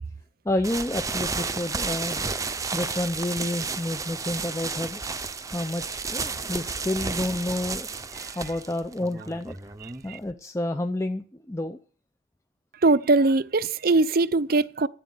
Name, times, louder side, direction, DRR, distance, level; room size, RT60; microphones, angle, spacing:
voice 1, 0.5-2.3 2.7-5.0 5.5-7.9 8.4-9.6 10.0-11.8, left 1 dB, 15° left, 0.6 m, -29 dB
sound 1, 0.6-10.2, right 4 dB, 20° right, 0.8 m, -32 dB
voice 2, 9.8-10.2 12.8-14.9, right 3 dB, 50° right, 0.6 m, -21 dB
11.5 x 9.4 x 9.6 m
head